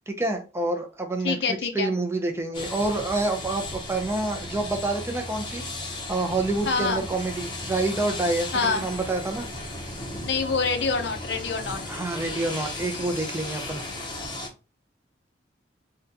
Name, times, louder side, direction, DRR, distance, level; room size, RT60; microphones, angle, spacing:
voice 1, 0.1-5.7 6.1-9.5 11.9-13.8, right 2 dB, 15° right, 4 dB, 0.5 m, -28 dB
voice 2, 1.2-1.9 6.7-7.0 8.5-8.8 10.2-11.8, left 4 dB, 65° left, 6 dB, 0.6 m, -26 dB
sound 1, 2.5-14.5, left 2 dB, 25° left, 0.7 m, -36 dB
sound 2, 3.6-11.6, equal, 50° right, 0.7 m, -42 dB
3.7 x 2.2 x 2.7 m, 0.32 s
head